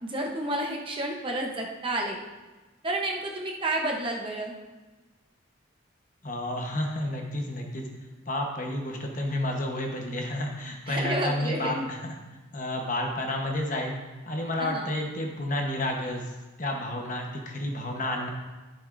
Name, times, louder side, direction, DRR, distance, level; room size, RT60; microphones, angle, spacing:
voice 1, 0.0-2.2 2.8-4.6 10.9-11.9 14.6-14.9, right 1 dB, 25° right, 0 dB, 0.9 m, -30 dB
voice 2, 6.2-7.8 8.3-12.0 12.5-14.0 14.3-18.3, left 1 dB, 40° left, 1 dB, 1.1 m, -30 dB
13.0 x 7.1 x 2.6 m, 1.2 s
head